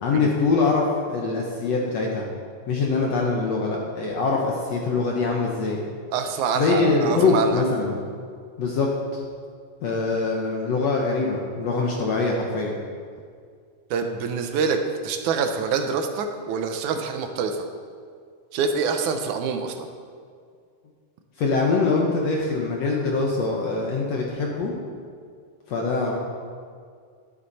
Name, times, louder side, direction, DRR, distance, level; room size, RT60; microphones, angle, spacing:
voice 1, 0.0-2.3 2.7-5.8 6.6-8.0 8.6-9.2 9.8-12.8 21.4-24.7 25.7-26.2, left 3 dB, 60° left, -2 dB, 2.0 m, -23 dB
voice 2, 6.1-7.6 13.9-17.6 18.5-19.9, right 5 dB, 70° right, 6 dB, 2.2 m, -26 dB
12.0 x 12.0 x 4.2 m, 2.1 s
omnidirectional pair, 3.8 m